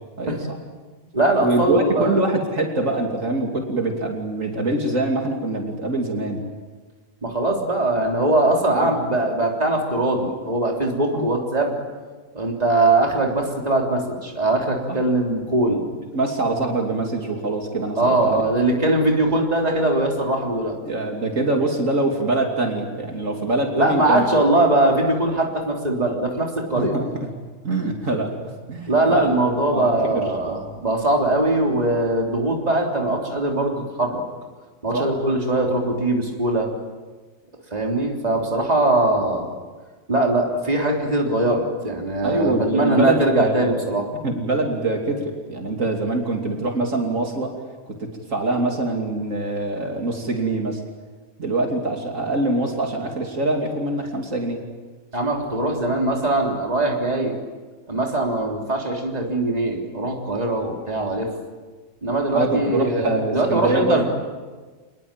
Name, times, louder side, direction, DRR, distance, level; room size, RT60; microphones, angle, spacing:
voice 1, 0.2-0.6 1.4-6.4 8.8-8.9 11.1-11.2 16.1-18.4 20.8-24.2 26.8-27.3 27.6-28.4 28.7-29.3 29.7-30.2 34.9-35.1 42.2-43.7 44.2-47.5 47.9-50.8 51.4-54.6 62.3-64.0, right 2 dB, 70° right, 2 dB, 3.2 m, -24 dB
voice 2, 1.1-2.2 7.2-11.8 12.3-15.8 18.0-20.8 23.8-27.0 28.9-34.2 34.8-36.7 37.7-39.5 40.1-44.1 55.1-57.3 57.9-61.3 62.0-64.0, right 2 dB, 30° right, 0 dB, 3.7 m, -21 dB
27.5 x 20.5 x 9.0 m, 1.4 s
omnidirectional pair, 1.4 m